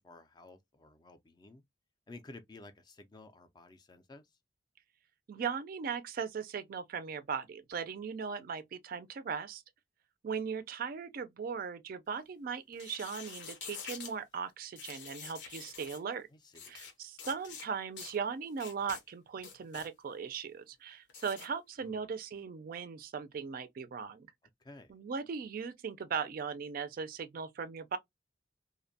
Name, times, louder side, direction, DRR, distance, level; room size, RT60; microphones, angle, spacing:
voice 1, 0.0-1.6 2.1-4.3 16.3-16.7 21.8-22.0 24.6-24.9, left 2 dB, 25° left, 0.3 m, -53 dB
voice 2, 5.3-9.6 10.2-16.3 16.7-24.3 24.9-28.0, right 6 dB, 50° right, 0.3 m, -38 dB
sound 1, 12.7-14.1 14.8-16.0 16.5-16.9 17.2-17.7 18.0-18.2 18.6-19.0 19.4-19.9 21.1-21.5, left 6 dB, 70° left, 0.6 m, -46 dB
2.6 x 2.1 x 2.6 m
head